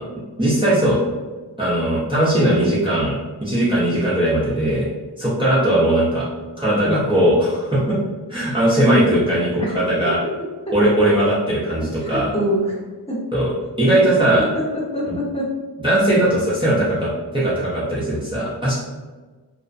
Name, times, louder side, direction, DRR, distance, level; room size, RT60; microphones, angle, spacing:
voice 1, 0.4-1.0 1.6-4.9 5.2-6.3 6.6-8.0 8.3-10.2 10.7-12.3 13.3-13.5 13.8-14.5 15.1-15.2 15.8-18.7, right 1 dB, 10° right, -9 dB, 0.6 m, -19 dB
voice 2, 12.0-12.8 13.1-13.2 13.9-14.0 14.4-14.5 14.7-15.5, equal, 15° left, -7 dB, 0.9 m, -24 dB
2.5 x 2.1 x 2.4 m, 1.3 s
wide cardioid pair, 55°, 43 cm